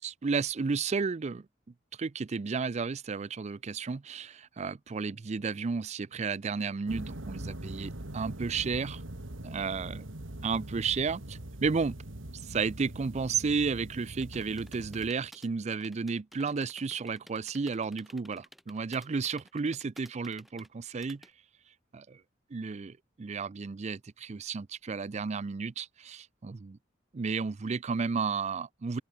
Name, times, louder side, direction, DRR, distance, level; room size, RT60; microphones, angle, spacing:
voice 1, 0.0-1.5 2.0-9.0 9.4-10.0 10.4-12.0 12.4-21.2 21.9-22.2 22.5-26.8 27.1-29.0, right 5 dB, 35° right, 0.4 m, -32 dB
sound 1, 6.9-15.1, right 1 dB, 80° right, 2.5 m, -42 dB
sound 2, 14.1-21.3, equal, ahead, 7.5 m, -54 dB
head